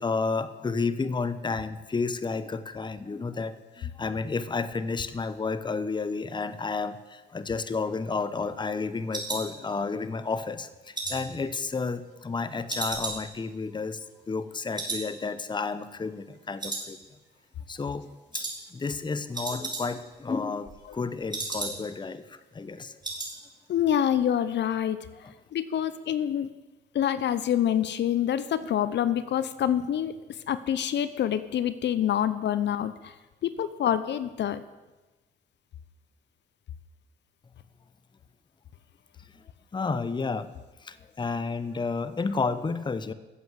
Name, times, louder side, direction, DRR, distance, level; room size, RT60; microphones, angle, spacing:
voice 1, 0.0-14.0 14.3-17.0 17.7-18.1 18.3-18.4 18.7-22.2 22.5-23.0 25.2-25.3 39.7-40.5 40.8-43.1, left 4 dB, 25° left, 13 dB, 0.8 m, -31 dB
sound 1, 7.4-10.2 10.5-12.3 12.7-14.5 14.7-15.1 15.4-15.5 15.9-16.3 16.6-17.4 17.7-17.9 18.3-18.6 18.9-19.0 19.2-20.2 20.5-22.1 22.4-22.5 22.7-23.3 23.6-23.9 24.2-24.3, right 3 dB, 20° right, 5.4 m, -36 dB
voice 2, 23.7-25.0 25.5-26.5 26.9-33.1 33.4-34.6, left 10 dB, 65° left, 14 dB, 0.8 m, -26 dB
13.0 x 7.9 x 8.1 m, 1.1 s
cardioid pair, 90°, 20 cm